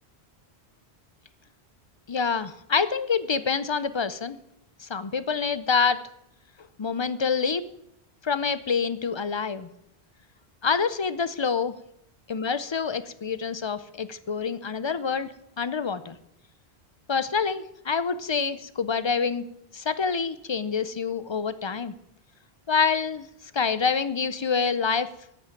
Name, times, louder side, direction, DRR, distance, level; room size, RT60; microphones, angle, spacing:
voice 1, 2.1-4.4 4.8-6.0 6.8-7.7 8.2-9.7 10.6-11.8 12.3-15.3 15.6-16.2 17.1-19.4 19.7-21.9 22.7-23.3 23.5-25.1, left 5 dB, 45° left, 14 dB, 0.3 m, -26 dB
8.8 x 8.3 x 8.9 m, 0.79 s
omnidirectional pair, 1.1 m